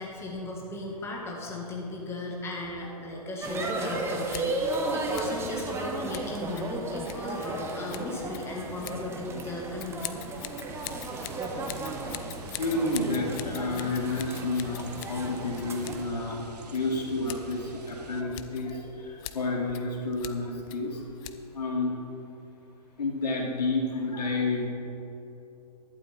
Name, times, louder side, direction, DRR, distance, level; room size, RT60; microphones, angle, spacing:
voice 1, 0.0-10.0, left 2 dB, 10° left, -2 dB, 1.7 m, -36 dB
sound 1, 3.4-16.0, right 2 dB, 10° right, 1.1 m, -34 dB
Scissors, 4.2-21.7, left 13 dB, 30° left, 0.6 m, -45 dB
sound 2, 10.7-18.2, right 4 dB, 80° right, 1.2 m, -46 dB
voice 2, 12.6-16.4 16.7-21.0 21.5-21.9 23.0-24.7, left 2 dB, 80° left, -1 dB, 2.7 m, -30 dB
11.5 x 11.5 x 4.3 m, 3.0 s
hypercardioid pair, 135°, 20 cm